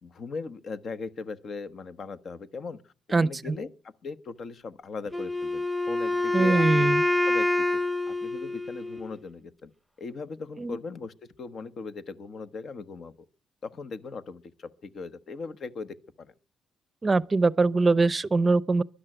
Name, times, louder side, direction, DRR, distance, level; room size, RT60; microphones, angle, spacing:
voice 1, 0.0-2.9 3.2-6.9 7.2-7.7 8.1-9.7 10.0-13.2 13.6-16.3, left 4 dB, 55° left, 1.1 m, -39 dB
Wind instrument woodwind instrument, 5.1-9.2, left 2 dB, ahead, 1.0 m, -26 dB
voice 2, 6.3-7.0 10.6-10.8 17.0-18.8, right 3 dB, 25° right, 0.6 m, -22 dB
12.5 x 11.5 x 9.0 m
cardioid pair, 90°, 0 cm